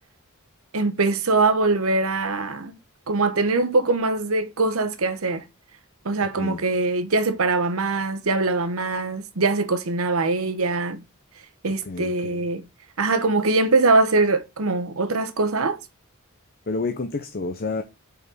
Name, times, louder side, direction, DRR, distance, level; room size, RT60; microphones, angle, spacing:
voice 1, 0.7-2.8 3.1-5.4 6.0-11.0 11.6-12.7 13.0-15.8, right 3 dB, 80° right, 1.0 m, -22 dB
voice 2, 11.8-12.4 16.7-17.8, left 3 dB, 45° left, 0.8 m, -29 dB
5.2 x 5.1 x 6.1 m
head